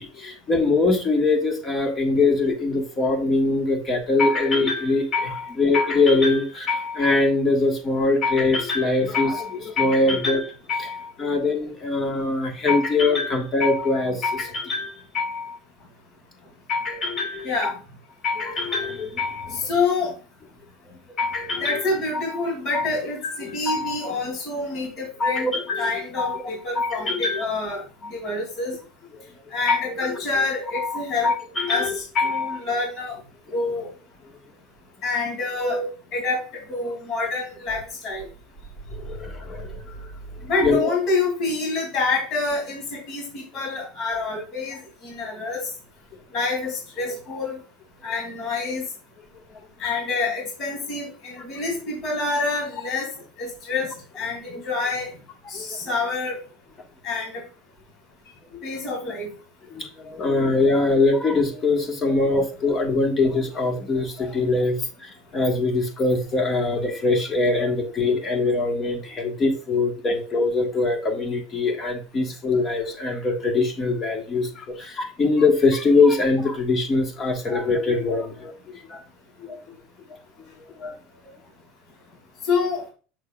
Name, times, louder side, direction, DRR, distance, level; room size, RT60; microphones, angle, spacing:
voice 1, 0.0-15.6 16.7-17.7 18.2-19.7 21.2-21.8 22.1-22.4 22.7-22.9 23.2-24.0 25.2-26.4 26.7-27.4 28.0-28.1 29.7-30.4 30.7-32.6 35.6-35.9 38.9-40.1 40.6-40.9 49.5-49.6 51.3-51.4 55.5-55.8 58.5-58.6 59.7-79.0 79.4-79.7 80.8-80.9, left 3 dB, 25° left, 4 dB, 1.5 m, -23 dB
voice 2, 19.5-20.1 21.6-25.5 25.8-27.8 28.1-28.8 29.5-31.3 31.7-33.2 33.5-33.9 35.0-35.8 36.1-36.4 36.7-38.3 40.5-45.7 46.3-47.6 48.0-48.9 49.8-53.1 53.4-55.1 55.5-56.4 57.0-57.3 58.6-59.3 82.4-82.8, left 3 dB, 40° left, -1 dB, 2.8 m, -27 dB
6.6 x 6.4 x 2.4 m, 0.37 s
supercardioid pair, 140°, 0 cm